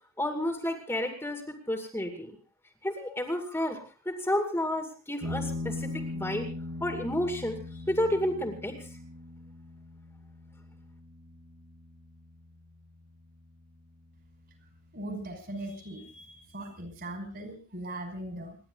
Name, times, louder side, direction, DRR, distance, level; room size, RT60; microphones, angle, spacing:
voice 1, 0.2-2.4 2.8-6.5 6.8-8.9, left 1 dB, 10° left, 4 dB, 2.4 m, -31 dB
sound 1, 5.2-14.2, left 2 dB, 85° right, 6.7 m, -40 dB
voice 2, 14.9-18.6, right 1 dB, 50° right, 5 dB, 5.5 m, -39 dB
28.0 x 11.0 x 3.9 m, 0.36 s
head